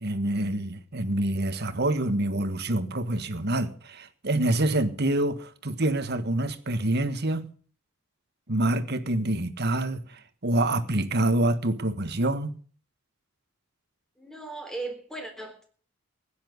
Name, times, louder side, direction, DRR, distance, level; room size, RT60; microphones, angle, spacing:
voice 1, 0.0-7.5 8.5-12.5, right 1 dB, 50° right, 1.6 m, -26 dB
voice 2, 14.2-15.7, right 2 dB, ahead, 3.6 m, -37 dB
16.0 x 10.5 x 6.6 m
head